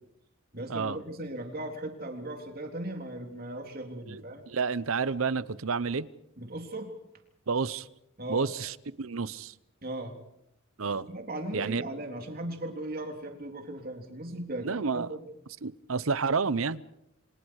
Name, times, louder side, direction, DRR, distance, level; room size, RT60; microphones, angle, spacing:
voice 1, 0.5-4.4 6.4-6.9 8.2-8.5 9.8-10.2 11.0-15.3, right 1 dB, 45° right, 3.7 m, -37 dB
voice 2, 4.5-6.1 7.5-7.9 8.3-9.5 10.8-11.0 11.5-11.8 14.6-15.1 15.6-16.9, right 5 dB, 80° right, 0.8 m, -30 dB
29.0 x 26.0 x 4.8 m
head